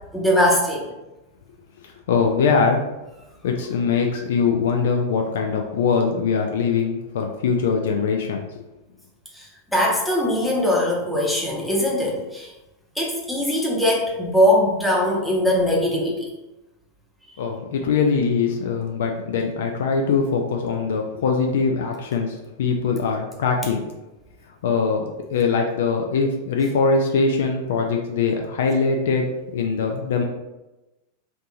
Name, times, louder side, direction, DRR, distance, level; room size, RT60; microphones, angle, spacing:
voice 1, 0.1-0.8 9.3-12.5 13.0-16.3, left 1 dB, 5° left, -4 dB, 0.8 m, -21 dB
voice 2, 2.1-2.8 3.4-8.5 17.4-23.8 24.6-29.3 29.5-30.2, left 5 dB, 60° left, 3 dB, 0.4 m, -22 dB
3.2 x 2.7 x 2.7 m, 1.0 s
figure-of-eight pair, 90°, 0 cm